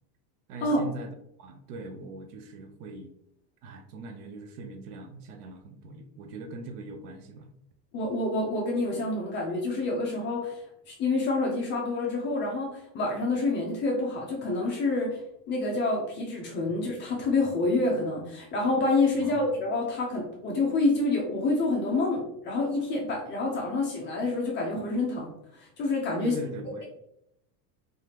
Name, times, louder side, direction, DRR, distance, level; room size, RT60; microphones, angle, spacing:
voice 1, 0.5-3.1 3.6-7.5 16.7-16.8 19.1-19.4 26.2-26.8, right 2 dB, 65° right, 6 dB, 0.7 m, -41 dB
voice 2, 7.9-10.6 10.9-15.2 15.5-26.4, left 2 dB, 25° left, -2 dB, 0.4 m, -27 dB
3.3 x 2.4 x 2.8 m, 0.78 s
supercardioid pair, 150°, 50 cm